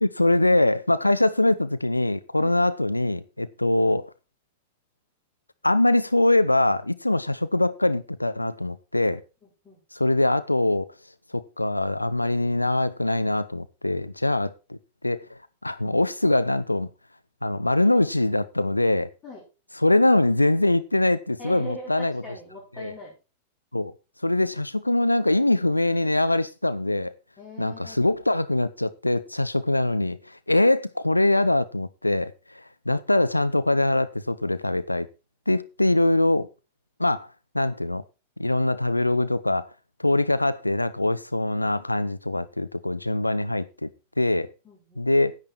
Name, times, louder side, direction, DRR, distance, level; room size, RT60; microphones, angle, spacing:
voice 1, 0.0-4.1 5.6-9.2 9.9-10.9 11.3-14.8 15.0-15.2 15.6-16.9 17.4-19.1 19.8-22.2 22.8-22.9 23.7-23.9 24.2-27.1 27.6-32.3 32.9-35.1 35.5-36.5 37.0-37.3 37.5-38.0 38.4-39.7 40.0-43.9 44.2-44.5 45.0-45.3, left 2 dB, 85° left, 0.6 m, -23 dB
voice 2, 9.4-9.8 19.2-19.4 21.4-23.1 27.4-28.0 44.6-45.1, left 1 dB, 25° left, 5.1 m, -42 dB
10.5 x 8.6 x 4.4 m
figure-of-eight pair, 90°, 0 cm